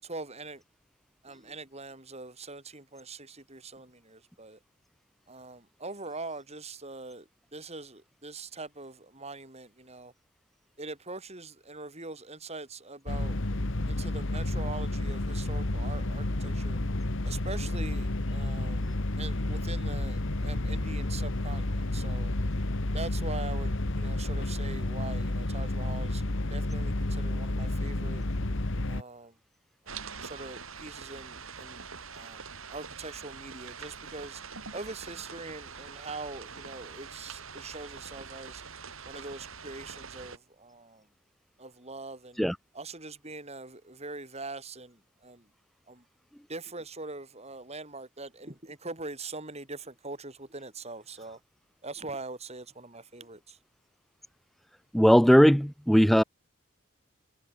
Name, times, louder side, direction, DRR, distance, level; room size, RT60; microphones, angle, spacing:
voice 1, 0.0-0.6 1.2-4.6 5.3-10.1 10.8-13.4 13.9-16.8 17.2-22.3 22.9-28.2 28.8-29.3 29.8-31.8 32.1-34.4 34.7-38.6 39.0-41.0 41.6-42.4 42.7-45.4 45.9-46.0 46.5-51.4 51.8-53.6, right 3 dB, 30° right, 6.9 m, -42 dB
sound 1, 13.1-29.0, left 1 dB, 60° left, 1.5 m, -31 dB
sound 2, 29.9-40.4, right 5 dB, 75° right, 4.5 m, -44 dB
voice 2, 54.9-56.2, equal, ahead, 0.8 m, -19 dB
head